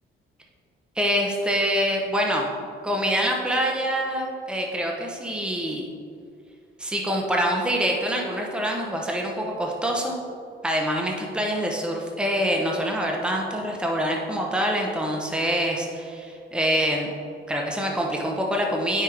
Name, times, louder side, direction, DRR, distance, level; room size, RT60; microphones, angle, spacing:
voice 1, 1.0-2.5 2.8-5.9 6.8-10.2 10.6-17.1 17.5-19.0, equal, 5° right, 0 dB, 1.0 m, -25 dB
8.9 x 5.9 x 3.4 m, 2.4 s
cardioid pair, 90°, 20 cm